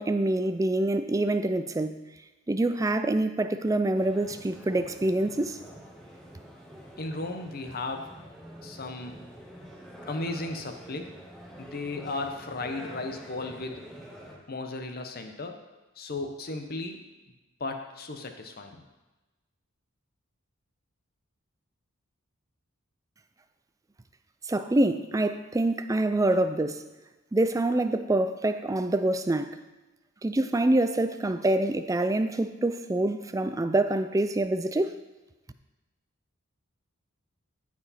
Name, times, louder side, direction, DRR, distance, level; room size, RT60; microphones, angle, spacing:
voice 1, 0.0-2.0 2.5-5.6 24.4-26.9 27.3-29.6 30.2-35.0, right 1 dB, 15° right, 10 dB, 0.3 m, -26 dB
sound 1, 3.9-14.3, right 1 dB, 5° left, 1.9 m, -47 dB
voice 2, 7.0-8.1 8.6-9.2 10.1-11.1 11.6-13.8 14.5-15.6 16.0-17.0 17.6-18.8, left 2 dB, 45° left, 5 dB, 0.9 m, -35 dB
14.5 x 4.9 x 4.2 m, 1.1 s
head